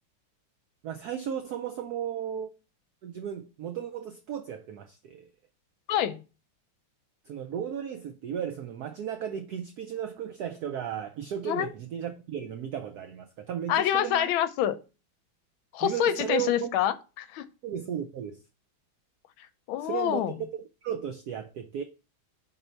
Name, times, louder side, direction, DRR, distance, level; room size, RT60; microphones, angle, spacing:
voice 1, 0.8-2.5 3.0-5.3 7.3-14.3 15.8-16.7 17.6-18.4 19.8-20.3 20.6-21.8, right 9 dB, 90° right, 0.8 m, -35 dB
voice 2, 5.9-6.2 11.5-11.7 13.7-14.8 15.7-17.5 19.7-20.3, left 11 dB, 80° left, 1.3 m, -26 dB
5.4 x 4.1 x 4.4 m
omnidirectional pair, 2.3 m